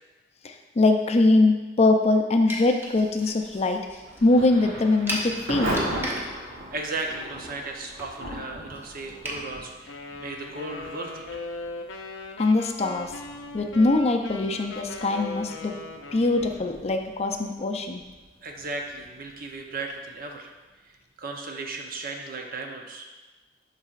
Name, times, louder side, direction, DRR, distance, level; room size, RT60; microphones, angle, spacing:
voice 1, 0.4-3.8 4.2-5.7 12.4-13.1 13.5-15.8 16.1-18.0, left 2 dB, 35° left, 5 dB, 0.5 m, -22 dB
sound 1, 2.5-9.4, equal, 10° right, 0.9 m, -38 dB
Thunder / Rain, 4.0-20.7, right 1 dB, 90° right, 1.6 m, -39 dB
voice 2, 6.7-11.4 18.4-20.5 20.8-23.1, right 3 dB, 50° right, 2 dB, 0.7 m, -36 dB
Wind instrument woodwind instrument, 9.9-16.8, left 3 dB, 80° left, 0.6 m, -39 dB
12.0 x 4.1 x 2.4 m, 1.2 s
head